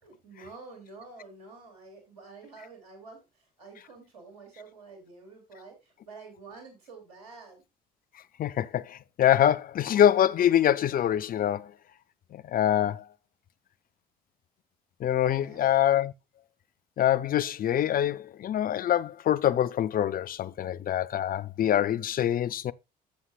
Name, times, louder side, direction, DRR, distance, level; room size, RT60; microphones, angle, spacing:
voice 1, 0.0-7.6 15.3-15.8, right 4 dB, 85° right, 2.9 m, -49 dB
voice 2, 8.4-11.7 12.3-13.0 15.0-16.1 17.0-22.7, left 10 dB, 45° left, 0.5 m, -25 dB
11.5 x 7.4 x 2.4 m
hypercardioid pair, 50°, 20 cm